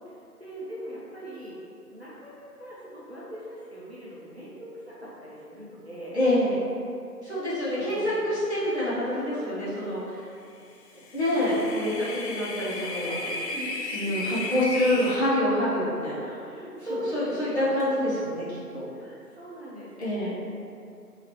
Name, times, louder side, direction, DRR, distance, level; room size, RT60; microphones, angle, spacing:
voice 1, 0.4-1.6 1.9-6.2 7.8-8.1 9.3-9.6 12.7-14.3 16.2-17.9 18.9-19.9, equal, 45° right, -8 dB, 0.6 m, -40 dB
voice 2, 6.1-6.7 7.2-10.2 11.1-13.1 13.9-16.3 17.1-18.9 20.0-20.3, left 1 dB, 45° left, -10 dB, 1.1 m, -26 dB
sound 1, 10.9-15.2, left 2 dB, 80° left, 0.6 m, -34 dB
3.0 x 2.8 x 3.0 m, 2.5 s
figure-of-eight pair, 165°, 47 cm